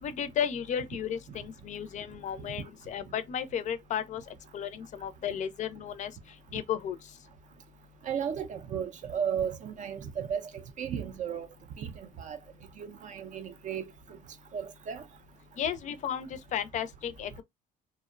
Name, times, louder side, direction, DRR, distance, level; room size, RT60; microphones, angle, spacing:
voice 1, 0.0-6.1 6.5-7.0 15.6-17.4, left 9 dB, 45° left, 0.4 m, -34 dB
voice 2, 8.1-10.4 10.8-11.5 11.8-12.4 12.8-13.9 14.5-15.0, right 8 dB, 50° right, 0.4 m, -34 dB
2.4 x 2.0 x 2.4 m
cardioid pair, 110°, 17 cm